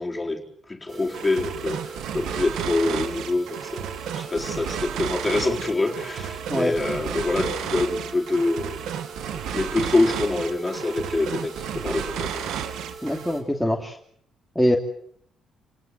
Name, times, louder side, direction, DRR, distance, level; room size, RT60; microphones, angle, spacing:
voice 1, 0.0-3.9 4.1-8.9 9.3-12.5, left 2 dB, 20° left, 1 dB, 4.4 m, -26 dB
sound 1, 0.9-13.4, right 4 dB, 55° right, 6.8 m, -42 dB
sound 2, 1.1-13.4, right 9 dB, 85° right, 2.1 m, -32 dB
voice 2, 13.0-14.0 14.5-14.8, equal, ahead, -1 dB, 2.9 m, -23 dB
29.0 x 18.5 x 8.0 m, 0.65 s
cardioid pair, 90°, 0 cm